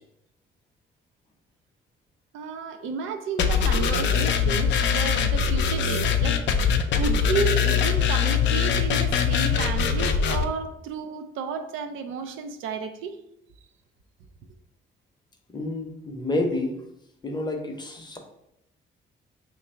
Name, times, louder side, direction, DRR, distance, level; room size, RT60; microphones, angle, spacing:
voice 1, 2.3-6.4 6.9-13.2, right 5 dB, 85° right, 7 dB, 0.4 m, -32 dB
sound 1, 3.4-10.4, left 7 dB, 65° left, 0.4 m, -22 dB
voice 2, 15.5-16.7 17.2-18.2, left 2 dB, 20° left, 3 dB, 0.7 m, -29 dB
2.8 x 2.6 x 4.2 m, 0.80 s
cardioid pair, 90°, 20 cm